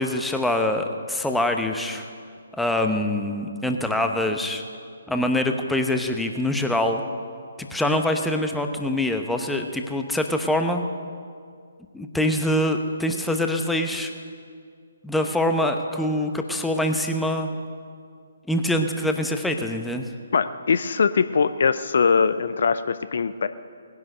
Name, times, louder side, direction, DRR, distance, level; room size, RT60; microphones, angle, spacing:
voice 1, 0.0-2.1 2.6-4.6 5.1-7.0 7.7-10.8 11.9-14.1 15.0-17.5 18.5-20.1, left 1 dB, 5° left, 5 dB, 0.9 m, -24 dB
voice 2, 20.3-23.5, left 5 dB, 55° left, 13 dB, 0.5 m, -21 dB
19.0 x 11.0 x 6.6 m, 2.2 s
figure-of-eight pair, 135°, 0 cm